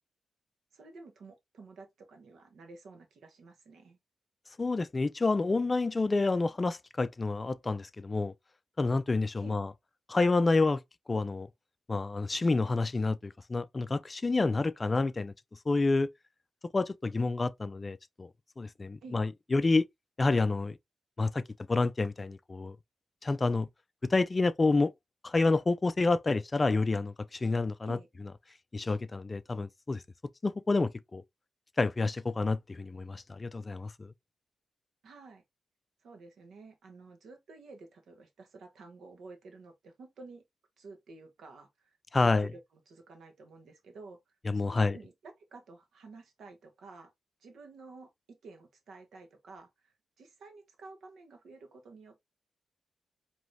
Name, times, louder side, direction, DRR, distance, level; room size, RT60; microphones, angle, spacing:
voice 1, 0.7-4.0 9.4-9.6 19.0-19.2 27.8-28.1 35.0-35.4 36.0-40.4 40.8-42.6 42.9-47.1 47.4-52.2, right 3 dB, 80° right, 1.3 m, -51 dB
voice 2, 4.6-8.3 8.8-9.7 10.1-10.8 11.1-11.5 11.9-15.3 15.7-16.1 16.7-18.3 18.6-19.8 20.2-20.8 21.2-21.4 21.7-22.8 23.2-23.7 24.1-24.9 25.2-28.0 28.7-30.0 30.4-31.2 31.8-34.1 42.1-42.5 44.5-45.0, left 3 dB, 35° left, 0.4 m, -28 dB
4.8 x 3.0 x 2.6 m
cardioid pair, 70°, 0 cm